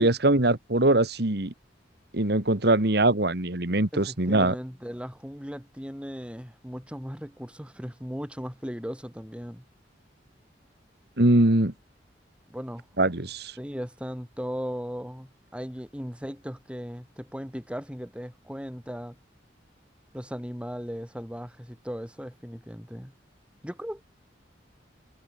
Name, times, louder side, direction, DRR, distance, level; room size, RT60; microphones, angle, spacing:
voice 1, 0.0-1.5 2.1-4.5 11.2-11.7 13.0-13.5, right 2 dB, 60° right, 2.1 m, -22 dB
voice 2, 3.9-9.6 12.5-12.8 13.6-19.2 20.1-23.1 23.6-24.0, equal, 5° right, 5.9 m, -37 dB
head